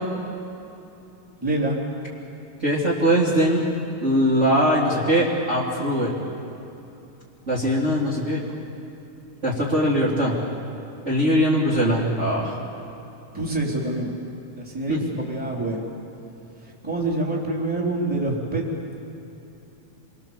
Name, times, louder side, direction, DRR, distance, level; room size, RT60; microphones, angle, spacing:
voice 1, 1.4-1.8 13.3-14.1 14.6-15.0 15.3-15.8 16.8-18.6, right 2 dB, 5° right, -3 dB, 3.5 m, -26 dB
voice 2, 2.6-3.6 4.0-6.1 7.5-8.4 9.4-10.3 11.0-12.6 14.9-15.0, equal, 20° right, -6 dB, 2.9 m, -21 dB
27.5 x 24.5 x 7.3 m, 2.9 s
omnidirectional pair, 3.7 m